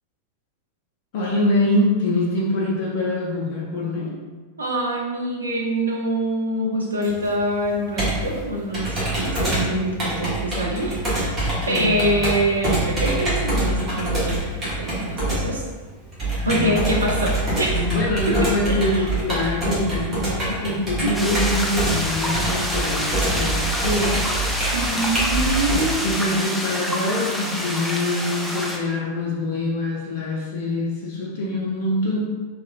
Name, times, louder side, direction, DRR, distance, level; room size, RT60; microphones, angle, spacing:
voice 1, 1.1-4.1 11.6-12.1 16.3-16.9 17.7-24.1 26.0-32.2, left 1 dB, 50° left, -4 dB, 0.6 m, -24 dB
voice 2, 4.6-11.4 11.7-15.7 16.4-17.9 18.3-19.1 21.0-21.4 24.7-26.1, right 1 dB, 75° right, -1 dB, 0.5 m, -25 dB
Computer keyboard, 7.0-25.9, right 1 dB, 25° right, 1.0 m, -25 dB
sound 1, 21.1-28.8, equal, ahead, 0.4 m, -27 dB
2.9 x 2.4 x 2.4 m, 1.4 s
figure-of-eight pair, 90°, 0 cm